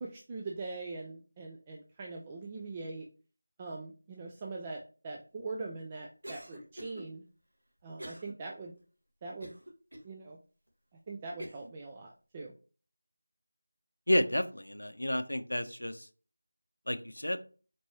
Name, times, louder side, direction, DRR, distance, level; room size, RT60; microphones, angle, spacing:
voice 1, 0.0-3.1 3.6-7.2 7.8-8.8 9.2-9.5 10.0-10.4 11.1-12.5, right 3 dB, 20° right, 0 dB, 0.4 m, -42 dB
Cough, 6.2-7.0 8.0-8.3 8.8-8.9 9.4-10.1 10.7-10.8 11.4-11.7, equal, 75° right, 1.4 m, -45 dB
voice 2, 14.1-16.1 16.9-17.4, left 1 dB, 90° left, 11 dB, 0.5 m, -31 dB
4.4 x 3.0 x 2.8 m, 0.37 s
figure-of-eight pair, 170°, 0 cm